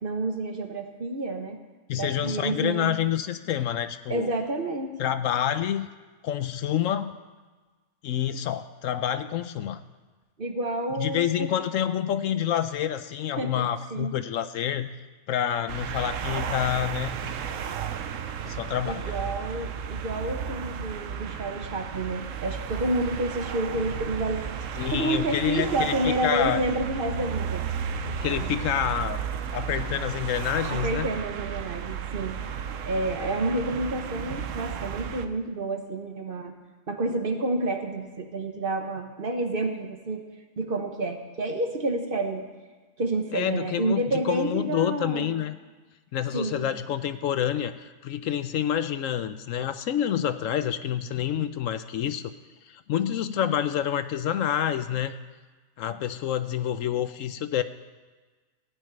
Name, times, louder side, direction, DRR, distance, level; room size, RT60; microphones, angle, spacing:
voice 1, 0.0-1.6 2.0-3.0 4.1-4.9 10.4-11.5 13.4-14.1 18.9-24.7 24.9-27.6 28.1-28.5 30.7-32.4 32.8-36.5 36.9-40.2 40.6-42.5 43.0-45.3 46.3-46.7, right 2 dB, 40° right, 5 dB, 1.2 m, -29 dB
voice 2, 1.9-4.3 5.0-5.9 6.2-7.1 8.0-9.8 11.0-14.9 15.3-17.2 18.4-19.1 24.8-26.6 28.2-29.2 29.5-31.1 43.3-45.6 46.1-52.3 52.7-55.1 55.8-57.6, left 10 dB, 70° left, 12 dB, 1.0 m, -28 dB
sound 1, 15.7-35.3, right 7 dB, 70° right, 1.1 m, -33 dB
16.0 x 6.3 x 8.9 m, 1.3 s
omnidirectional pair, 1.4 m